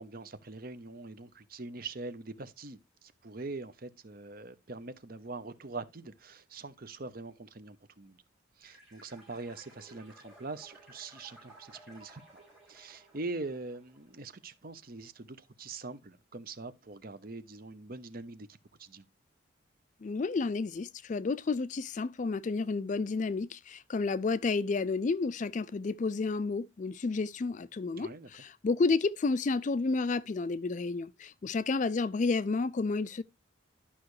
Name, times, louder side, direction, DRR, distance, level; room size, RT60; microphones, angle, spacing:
voice 1, 0.0-8.2 8.6-12.2 12.7-19.1 27.9-28.3, right 3 dB, 45° right, 0.8 m, -43 dB
sound 1, 8.6-14.4, right 2 dB, ahead, 5.6 m, -57 dB
voice 2, 20.0-33.2, left 4 dB, 35° left, 0.3 m, -31 dB
11.5 x 5.7 x 3.2 m
head